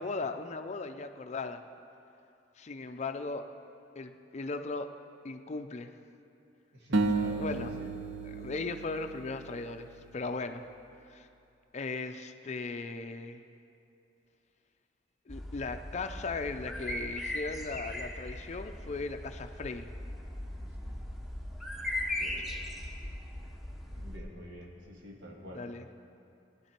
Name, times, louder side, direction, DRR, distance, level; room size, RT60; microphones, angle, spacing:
voice 1, 0.0-1.6 2.6-3.5 4.0-4.9 5.2-5.9 7.4-7.8 8.2-10.6 11.1-11.3 11.7-13.4 15.3-19.9 25.5-25.9, left 3 dB, 35° left, 8 dB, 0.5 m, -37 dB
voice 2, 6.7-8.0 20.6-21.0 22.2-22.5 23.9-25.6, left 1 dB, 65° right, -1 dB, 2.0 m, -48 dB
sound 1, 6.9-10.2, right 3 dB, 85° right, 0.7 m, -33 dB
sound 2, 15.3-24.2, left 1 dB, ahead, 1.0 m, -39 dB
17.5 x 11.0 x 4.4 m, 2.6 s
head